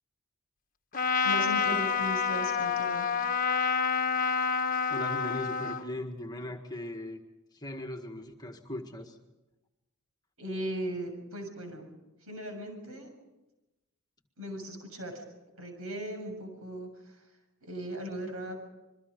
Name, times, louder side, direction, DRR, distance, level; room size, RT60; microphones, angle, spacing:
Trumpet, 0.9-5.9, left 6 dB, 40° left, 1.2 m, -28 dB
voice 1, 1.2-3.1 10.4-11.9 12.2-13.1 14.4-15.2 15.6-17.2 17.6-18.6, equal, 75° right, 4 dB, 6.9 m, -38 dB
voice 2, 4.9-7.2 7.5-9.2, left 1 dB, 20° left, 5 dB, 1.8 m, -38 dB
27.0 x 23.0 x 5.3 m, 1.0 s
head